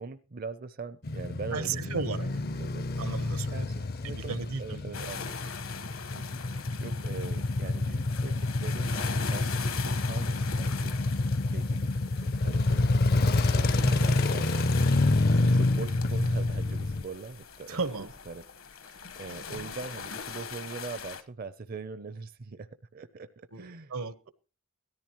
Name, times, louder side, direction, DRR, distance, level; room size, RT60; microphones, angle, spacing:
voice 1, 0.0-2.8 3.5-4.3 4.6-5.4 6.1-11.0 11.5-12.9 13.3-17.9 18.3-18.4 18.8-23.9, right 4 dB, 45° right, 0.5 m, -42 dB
Male speech man speaking / Motorcycle / Idling, 1.0-17.0, left 2 dB, 45° left, 0.5 m, -28 dB
voice 2, 1.5-2.3 2.6-3.6 4.0-5.1 13.8-14.0 17.7-18.1 23.5-24.3, right 4 dB, 75° right, 1.1 m, -35 dB
sound 1, 4.9-21.2, left 6 dB, 70° left, 1.2 m, -41 dB
17.5 x 13.5 x 3.0 m
head